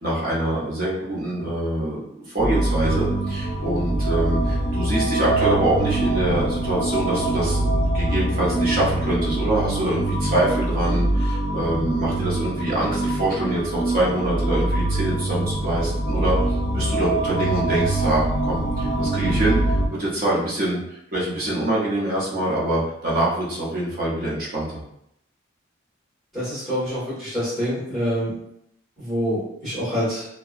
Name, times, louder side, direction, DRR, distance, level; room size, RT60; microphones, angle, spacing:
voice 1, 0.0-2.0 2.3-7.6 7.9-24.8, right 1 dB, 45° right, -5 dB, 0.8 m, -25 dB
sound 1, 2.4-19.9, right 2 dB, 50° left, 0.4 m, -24 dB
voice 2, 26.3-28.3 29.0-30.3, equal, ahead, -13 dB, 1.4 m, -26 dB
2.8 x 2.2 x 2.4 m, 0.77 s
head